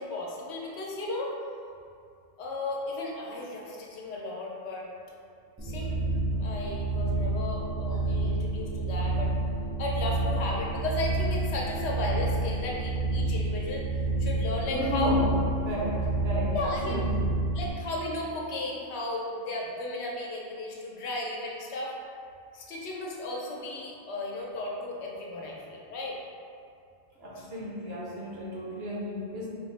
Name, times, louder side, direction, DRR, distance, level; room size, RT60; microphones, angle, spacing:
voice 1, 0.0-1.4 2.4-4.9 5.6-6.0 6.4-9.3 9.8-13.9 14.2-15.2 16.5-17.0 17.5-21.9 22.5-26.2 27.4-27.5, left 2 dB, 85° left, -2 dB, 0.9 m, -34 dB
sound 1, 5.6-17.7, right 2 dB, 25° right, 0.4 m, -29 dB
voice 2, 14.7-15.3 15.6-17.3 27.2-29.5, left 1 dB, 65° right, -6 dB, 1.0 m, -32 dB
4.5 x 2.0 x 3.2 m, 2.4 s
omnidirectional pair, 1.1 m